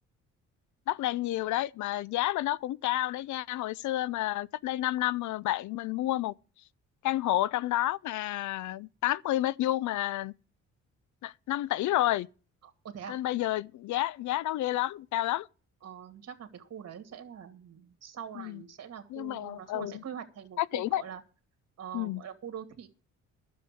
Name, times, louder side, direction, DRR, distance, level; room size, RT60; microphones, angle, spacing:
voice 1, 0.9-6.3 7.0-10.3 11.2-12.3 13.1-15.5 18.4-18.6 19.1-19.9 20.6-21.0 21.9-22.2, left 15 dB, 75° left, 0.5 m, -30 dB
voice 2, 12.6-13.2 15.8-21.2 21.8-22.9, right 8 dB, 55° right, 2.5 m, -44 dB
11.0 x 7.2 x 8.4 m
cardioid pair, 90°, 30 cm